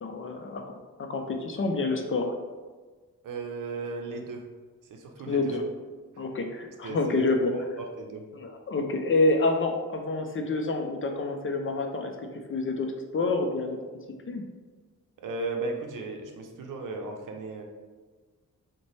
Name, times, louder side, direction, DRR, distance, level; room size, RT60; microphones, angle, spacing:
voice 1, 0.0-2.3 5.3-5.6 6.2-7.5 8.3-12.1 12.5-13.8 14.3-14.4, left 3 dB, 40° left, 4 dB, 0.5 m, -28 dB
voice 2, 3.2-4.4 4.9-5.6 6.1-6.2 6.8-7.2 7.5-8.2 15.2-17.6, right 3 dB, 70° right, 3 dB, 0.6 m, -36 dB
3.9 x 2.2 x 3.2 m, 1.4 s
cardioid pair, 70°, 33 cm